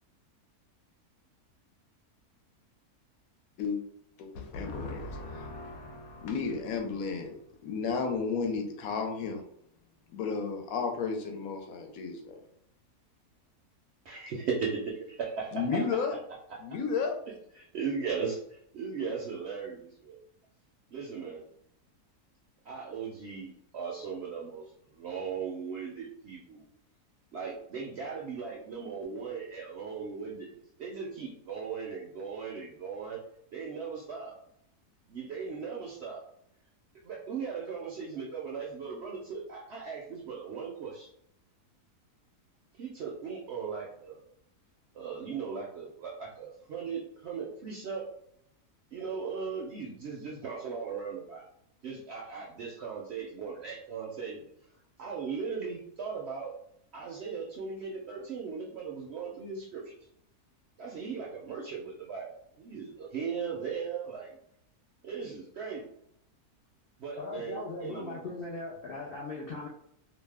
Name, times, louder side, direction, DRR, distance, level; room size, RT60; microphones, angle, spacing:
voice 1, 4.2-7.3 7.6-9.4 10.1-12.4 15.5-16.1 16.6-17.2, left 5 dB, 70° left, 4 dB, 1.0 m, -33 dB
voice 2, 14.1-15.8 17.6-20.2 20.9-21.4 22.7-26.6 27.3-30.5 30.8-33.2 33.5-34.3 35.1-36.2 37.0-41.1 42.8-44.2 44.9-48.0 48.9-51.4 51.8-54.4 55.0-56.5 56.9-59.9 60.8-62.3 62.6-64.4 65.0-65.8 67.0-68.2, right 5 dB, 70° right, -2 dB, 0.6 m, -38 dB
voice 3, 67.1-69.7, left 3 dB, 85° left, -3 dB, 0.5 m, -39 dB
2.6 x 2.1 x 3.3 m, 0.72 s
omnidirectional pair, 1.6 m